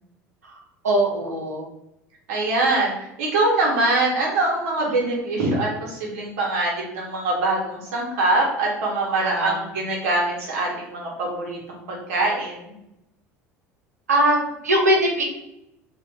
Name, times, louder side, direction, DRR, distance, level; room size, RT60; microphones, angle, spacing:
voice 1, 0.8-1.6 9.2-9.6 14.1-15.2, right 1 dB, 85° right, 0 dB, 0.5 m, -21 dB
voice 2, 2.3-12.7, right 2 dB, 70° right, -2 dB, 0.9 m, -23 dB
2.4 x 2.2 x 3.2 m, 0.85 s
hypercardioid pair, 70°, 8 cm